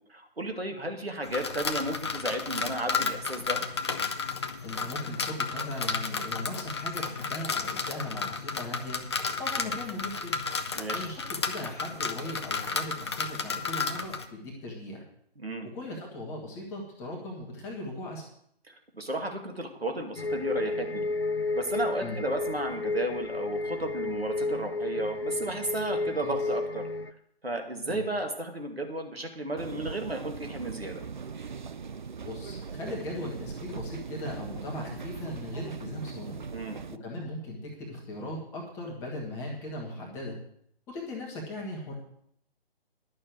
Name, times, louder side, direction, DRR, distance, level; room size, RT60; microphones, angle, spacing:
voice 1, 0.1-3.6 10.7-11.1 15.4-15.7 18.7-21.0 21.5-26.9 27.4-31.0 36.5-36.8, right 1 dB, 80° right, 4 dB, 2.4 m, -33 dB
sound 1, 1.2-14.3, left 4 dB, 25° left, 0.6 m, -32 dB
voice 2, 4.6-9.0 9.4-10.4 10.9-15.0 15.7-18.2 22.0-22.2 26.0-26.3 27.8-28.0 32.2-36.5 36.9-40.4 40.9-41.9, left 1 dB, 10° left, -2 dB, 1.3 m, -38 dB
sound 2, 20.2-27.1, left 3 dB, 80° left, 0.8 m, -32 dB
sound 3, 29.6-37.0, right 5 dB, 50° right, 0.5 m, -40 dB
11.0 x 6.6 x 7.7 m, 0.69 s
figure-of-eight pair, 145°, 30 cm